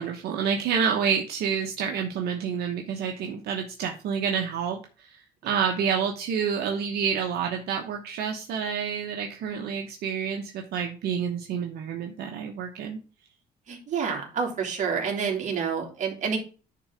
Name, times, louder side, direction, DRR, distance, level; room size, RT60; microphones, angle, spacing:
voice 1, 0.0-4.8 5.4-13.0, right 7 dB, 70° right, 3 dB, 1.0 m, -28 dB
voice 2, 13.7-16.4, right 6 dB, 45° right, 0 dB, 2.8 m, -28 dB
9.9 x 3.8 x 5.0 m, 0.35 s
cardioid pair, 110°, 17 cm